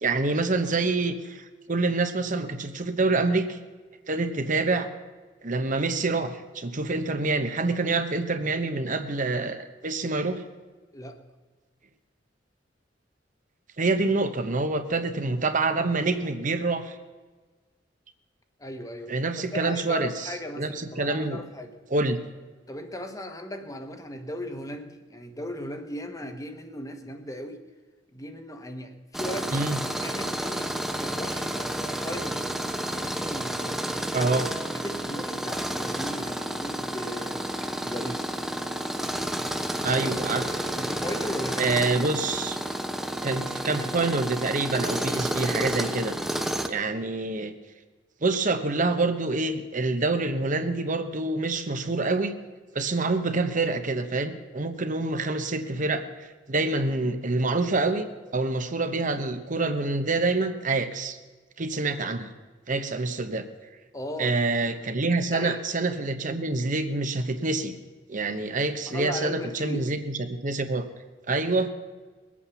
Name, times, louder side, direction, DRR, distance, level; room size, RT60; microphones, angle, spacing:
voice 1, 0.0-3.6 4.1-4.9 5.4-10.4 13.8-17.0 19.1-20.3 20.6-21.4 21.9-22.2 29.5-29.8 34.1-34.5 39.8-40.6 41.6-42.6 43.2-46.1 46.7-47.5 48.2-52.3 52.7-58.1 58.3-61.2 61.6-62.3 62.7-63.4 64.2-67.7 68.1-70.9 71.3-71.7, right 3 dB, 45° right, 8 dB, 1.0 m, -26 dB
voice 2, 18.6-19.1 19.5-21.7 22.7-27.6 28.1-29.6 30.0-32.4 32.9-34.3 34.7-37.4 37.8-38.4 40.7-42.0 63.9-64.3 65.3-65.6 68.9-69.8, left 1 dB, 20° left, 6 dB, 1.2 m, -37 dB
Tools, 29.1-46.7, right 1 dB, ahead, 0.9 m, -31 dB
20.5 x 8.7 x 7.0 m, 1.3 s
head